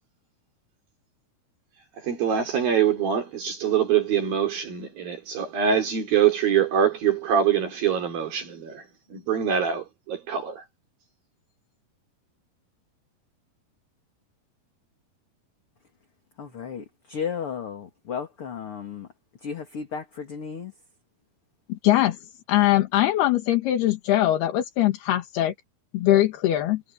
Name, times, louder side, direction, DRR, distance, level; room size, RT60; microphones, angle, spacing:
voice 1, 2.0-8.8 9.1-10.6, right 8 dB, 65° right, 4.9 m, -24 dB
voice 2, 16.4-19.1 19.4-20.7, left 7 dB, 40° left, 3.0 m, -34 dB
voice 3, 21.7-25.5 25.9-26.8, left 14 dB, 80° left, 3.6 m, -22 dB
omnidirectional pair, 4.6 m